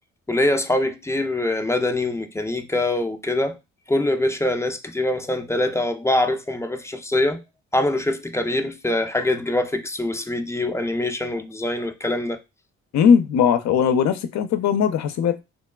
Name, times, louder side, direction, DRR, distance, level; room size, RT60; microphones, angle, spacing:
voice 1, 0.3-3.6 3.9-7.4 7.7-12.4, left 1 dB, 10° left, 0.4 m, -24 dB
voice 2, 12.9-15.4, left 7 dB, 65° left, 0.5 m, -19 dB
3.0 x 2.2 x 2.2 m
supercardioid pair, 50°, 30 cm